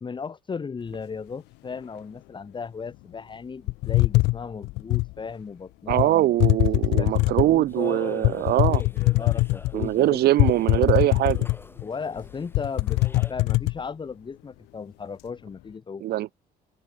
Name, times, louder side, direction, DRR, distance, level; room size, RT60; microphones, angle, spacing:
voice 1, 0.0-6.3 6.7-10.5 10.8-11.0 11.8-16.0, left 5 dB, 30° left, 1.9 m, -36 dB
sound 1, 3.7-5.1 5.9-6.1 6.4-7.6 8.2-9.9 10.4-11.8 12.2-12.3 12.5-13.7, left 22 dB, 90° left, 0.6 m, -22 dB
voice 2, 5.9-8.8 9.7-11.5 16.0-16.3, right 15 dB, 70° right, 1.8 m, -22 dB
sound 2, 7.7-13.3, left 2 dB, 15° left, 7.0 m, -44 dB
open air
cardioid pair, 110°, 17 cm